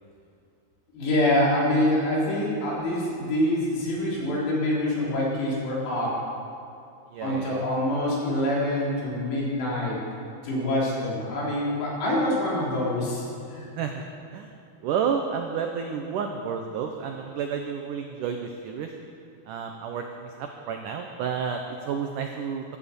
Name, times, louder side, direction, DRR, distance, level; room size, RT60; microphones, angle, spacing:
voice 1, 0.9-6.2 7.2-10.0 10.4-13.7, left 1 dB, 80° left, -5 dB, 5.9 m, -25 dB
voice 2, 7.1-7.6 13.8-14.0 14.3-14.5 14.8-18.9 19.5-21.6 21.9-22.6, right 7 dB, 85° right, 4 dB, 1.8 m, -30 dB
15.5 x 12.5 x 7.0 m, 2.6 s
omnidirectional pair, 4.9 m